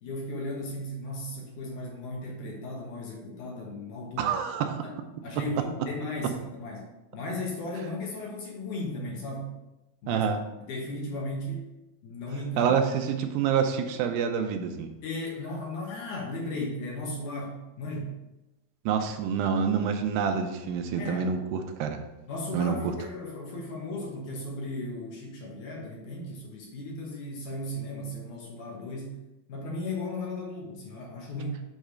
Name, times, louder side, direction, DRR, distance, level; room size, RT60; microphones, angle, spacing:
voice 1, 0.0-4.3 4.8-5.0 5.2-6.9 7.1-9.5 10.0-10.2 10.6-11.6 12.0-12.7 15.0-18.2 21.0-21.3 22.3-29.2 29.5-31.6, left 1 dB, 65° left, -2 dB, 2.4 m, -36 dB
voice 2, 4.2-4.8 5.6-5.7 10.1-10.4 12.6-14.9 18.9-22.0 22.5-22.9, right 7 dB, 85° right, 6 dB, 2.3 m, -27 dB
8.2 x 3.2 x 5.0 m, 0.99 s
omnidirectional pair, 4.2 m